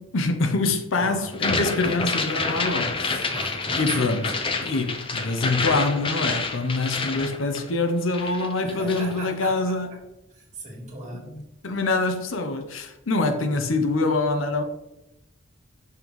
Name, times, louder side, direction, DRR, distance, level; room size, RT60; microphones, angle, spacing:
voice 1, 0.0-3.2 3.8-4.3 4.6-9.9 11.1-14.6, left 3 dB, 70° left, 0.7 m, -25 dB
voice 2, 0.9-1.3 3.2-4.3 8.6-9.7 10.3-11.3, right 2 dB, 35° right, 1.7 m, -38 dB
sound 1, 1.3-7.9 8.1-9.1, left 3 dB, 25° left, 0.5 m, -28 dB
5.7 x 5.4 x 3.1 m
head